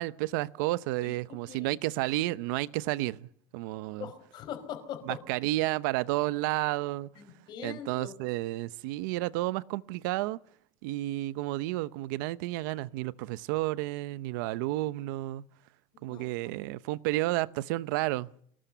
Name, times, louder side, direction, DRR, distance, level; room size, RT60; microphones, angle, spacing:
voice 1, 0.0-3.2 3.5-4.1 5.1-7.1 7.6-10.4 10.8-15.5 16.0-18.3, right 18 dB, 80° right, 0.8 m, -31 dB
voice 2, 1.0-1.7 4.0-5.2 7.1-8.2 15.9-16.5, left 9 dB, 45° left, 4.8 m, -42 dB
25.0 x 19.5 x 6.9 m
cardioid pair, 145°, 10 cm